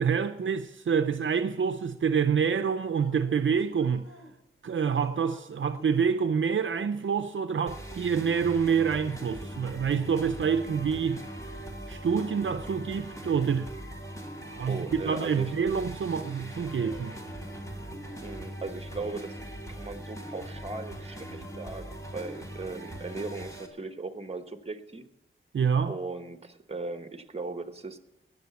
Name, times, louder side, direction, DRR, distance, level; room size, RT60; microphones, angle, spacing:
voice 1, 0.0-4.1 4.6-11.2 11.9-13.7 14.5-17.2 25.5-26.0, right 6 dB, 65° right, 0.6 m, -27 dB
sound 1, 3.0-4.3 4.7-6.6 8.0-8.1 8.6-9.7 11.1-12.1 12.4-13.6 14.1-15.0 15.4-16.3 16.7-18.5, equal, 80° left, 5.0 m, -53 dB
sound 2, 7.7-23.7, right 1 dB, 15° left, 2.4 m, -41 dB
sound 3, 10.5-17.8, left 1 dB, 45° left, 5.0 m, -54 dB
voice 2, 14.7-15.5 18.2-19.4 19.7-25.1 25.9-28.0, right 3 dB, 30° right, 1.1 m, -38 dB
19.0 x 6.7 x 6.9 m
wide cardioid pair, 90°, 21 cm